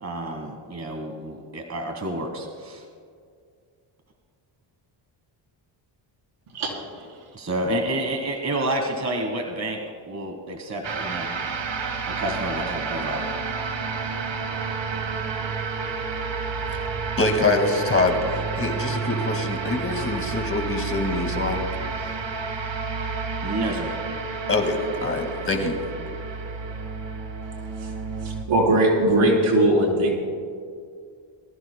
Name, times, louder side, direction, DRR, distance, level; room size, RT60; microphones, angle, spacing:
voice 1, 0.0-2.8 7.3-11.3 12.1-13.3 23.4-23.9, right 1 dB, 30° right, 3 dB, 1.5 m, -29 dB
sound 1, 10.8-28.4, right 5 dB, 60° right, 1.6 m, -30 dB
voice 2, 17.2-18.2 18.6-21.6 24.5-25.8, left 2 dB, 25° left, 4 dB, 2.0 m, -24 dB
voice 3, 28.2-30.1, right 1 dB, 80° right, -2 dB, 4.1 m, -20 dB
22.5 x 14.5 x 2.3 m, 2.2 s
cardioid pair, 85°, 50 cm